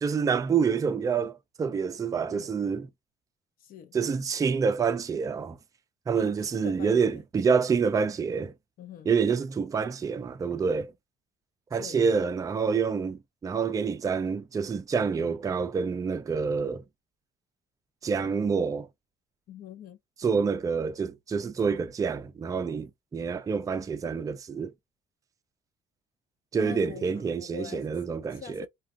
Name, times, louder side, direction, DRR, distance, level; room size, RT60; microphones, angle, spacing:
voice 1, 0.0-2.9 3.9-5.6 6.1-8.5 9.1-10.9 11.7-16.8 18.0-18.9 20.2-24.7 26.5-28.7, right 5 dB, 20° right, 0.4 m, -27 dB
voice 2, 3.6-4.0 6.2-7.2 8.8-9.1 11.8-12.0 19.5-20.0 26.6-27.9 28.3-28.7, left 9 dB, 60° left, 0.7 m, -44 dB
2.3 x 2.3 x 3.5 m
cardioid pair, 110°, 17 cm